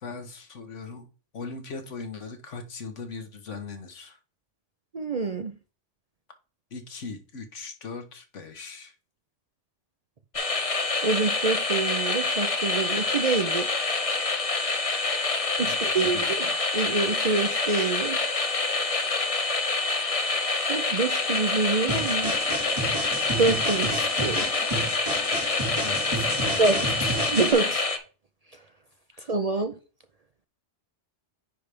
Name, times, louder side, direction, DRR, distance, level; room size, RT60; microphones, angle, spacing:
voice 1, 0.0-1.1 1.3-4.2 6.7-8.9 15.6-16.3 25.8-27.2 29.1-29.3, left 4 dB, 80° left, 1.5 m, -39 dB
voice 2, 4.9-5.5 11.0-13.7 15.6-18.2 20.7-22.4 23.4-24.5 26.6-26.8 27.3-27.8 29.3-29.8, right 4 dB, 45° right, 0.5 m, -26 dB
sound 1, 10.3-28.0, left 3 dB, 35° left, 0.8 m, -26 dB
sound 2, 21.9-27.5, right 2 dB, 20° right, 1.6 m, -32 dB
9.5 x 5.2 x 3.3 m
omnidirectional pair, 1.2 m